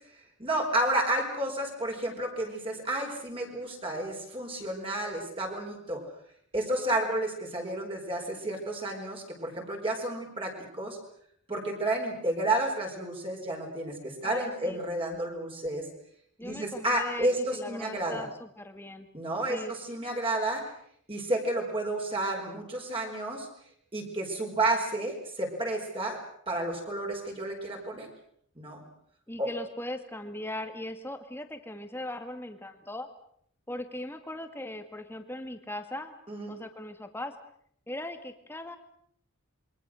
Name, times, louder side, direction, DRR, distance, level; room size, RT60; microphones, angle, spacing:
voice 1, 0.4-6.0 6.5-11.0 11.5-15.8 16.4-18.2 19.1-20.7 21.1-23.5 23.9-26.2 26.5-28.1 28.6-28.8 29.4-29.5 36.3-36.5, right 1 dB, 25° right, 1 dB, 4.9 m, -31 dB
voice 2, 14.2-14.8 16.4-19.1 19.5-19.7 29.3-33.1 33.7-36.1 36.5-37.3 37.9-38.8, left 1 dB, 10° left, 7 dB, 2.0 m, -39 dB
28.0 x 23.0 x 6.4 m, 0.66 s
head